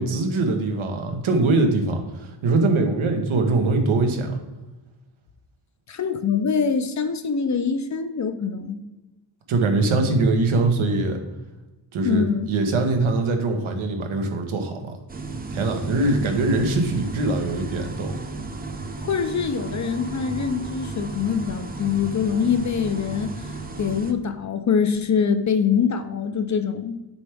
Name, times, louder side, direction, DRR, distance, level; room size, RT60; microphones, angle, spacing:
voice 1, 0.0-4.4 9.5-11.2 11.9-14.9 15.5-18.2, right 2 dB, 85° right, 4 dB, 1.2 m, -22 dB
voice 2, 5.9-8.8 12.0-12.5 19.0-23.4 23.8-27.0, left 6 dB, 40° left, 8 dB, 0.5 m, -24 dB
sound 1, 15.1-24.1, right 3 dB, 20° right, 0.5 m, -34 dB
7.1 x 4.5 x 3.4 m, 1.1 s
wide cardioid pair, 130°, 47 cm